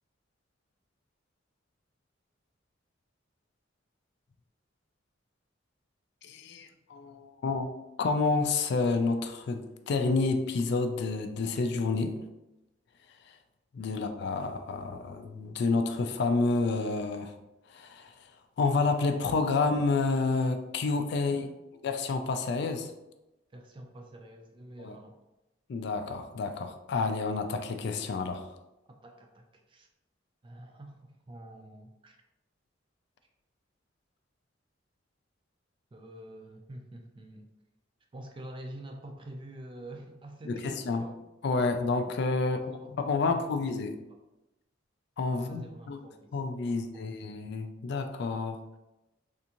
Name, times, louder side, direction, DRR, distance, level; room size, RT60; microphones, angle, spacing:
voice 1, 6.2-7.7 8.0-12.2 13.1-13.4 13.7-17.4 17.6-21.5 21.8-22.9 24.8-25.0 25.7-28.6 40.4-41.1 41.4-44.0 45.2-46.0 46.3-48.6, left 3 dB, 60° left, 7 dB, 0.3 m, -29 dB
voice 2, 23.5-25.2 28.9-29.9 30.4-32.2 35.9-37.5 38.1-41.2 42.4-43.6 45.3-46.3 46.7-47.2, right 1 dB, 25° right, 4 dB, 0.4 m, -47 dB
3.4 x 2.6 x 2.8 m, 0.95 s
head